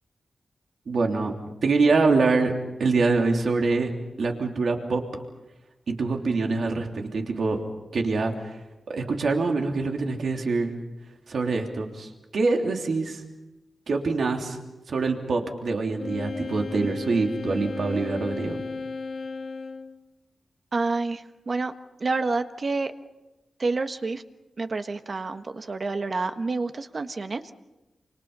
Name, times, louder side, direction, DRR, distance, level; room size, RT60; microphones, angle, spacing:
voice 1, 0.9-1.3 1.6-2.5 2.8-3.9 4.2-5.0 5.9-7.6 7.9-8.6 8.9-10.8 11.3-13.2 13.9-14.6 14.9-18.6, right 3 dB, 70° right, 2 dB, 3.2 m, -25 dB
Wind instrument woodwind instrument, 16.0-20.0, left 4 dB, 65° left, 2.2 m, -35 dB
voice 2, 20.7-21.7 22.0-22.9 23.6-24.2 24.6-27.5, right 3 dB, 50° right, 8 dB, 1.4 m, -28 dB
28.5 x 27.0 x 5.6 m, 1.0 s
wide cardioid pair, 85°, 0 cm